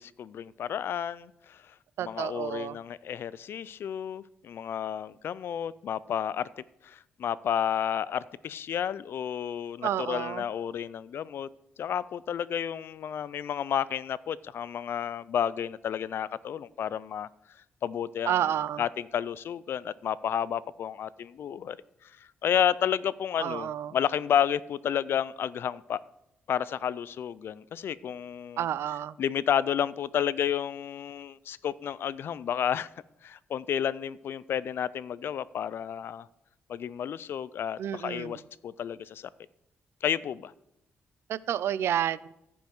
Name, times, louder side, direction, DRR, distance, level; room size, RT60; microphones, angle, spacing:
voice 1, 0.0-1.7 2.0-6.5 6.8-11.5 11.8-17.3 17.8-18.5 18.8-21.8 22.0-26.0 26.5-28.6 29.2-32.9 33.2-36.3 36.7-39.3 40.0-40.5, left 9 dB, 65° left, 0.3 m, -31 dB
voice 2, 2.0-2.8 9.8-10.4 18.3-18.8 23.4-24.0 28.6-29.2 37.8-38.4 41.3-42.2, right 10 dB, 80° right, 0.3 m, -30 dB
15.0 x 5.4 x 4.5 m
cardioid pair, 130°, 4 cm